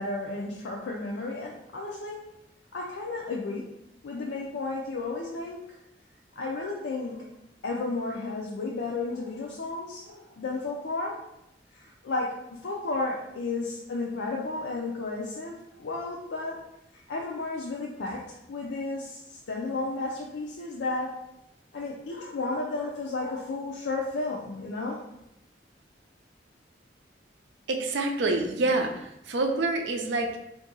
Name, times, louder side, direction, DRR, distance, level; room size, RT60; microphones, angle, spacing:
voice 1, 0.0-2.2 2.7-3.7 4.0-5.6 6.4-7.3 7.6-11.1 12.0-16.6 17.1-21.1 21.7-25.0, left 3 dB, 90° left, -2 dB, 0.4 m, -33 dB
voice 2, 27.7-30.3, right 2 dB, 80° right, 4 dB, 0.5 m, -27 dB
2.7 x 2.5 x 3.9 m, 0.83 s
head